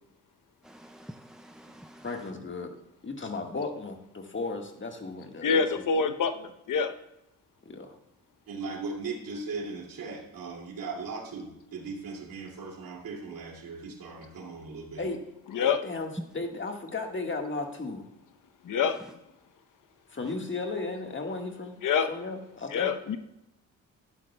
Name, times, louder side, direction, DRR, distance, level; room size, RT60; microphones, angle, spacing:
voice 1, 0.6-2.5 16.2-16.3 18.8-19.1 20.3-20.4, right 1 dB, ahead, 8 dB, 0.4 m, -45 dB
voice 2, 2.0-2.7 3.0-5.8 7.6-8.0 15.0-15.2 15.5-18.0 20.1-21.8 22.1-22.9, left 3 dB, 35° left, 4 dB, 1.6 m, -35 dB
voice 3, 5.4-6.9 15.5-15.8 18.6-19.0 21.8-22.1 22.7-23.2, left 6 dB, 60° left, 9 dB, 0.8 m, -26 dB
voice 4, 8.5-15.0, right 4 dB, 70° right, 0 dB, 2.4 m, -38 dB
12.5 x 10.5 x 2.2 m, 0.87 s
supercardioid pair, 60°, 35 cm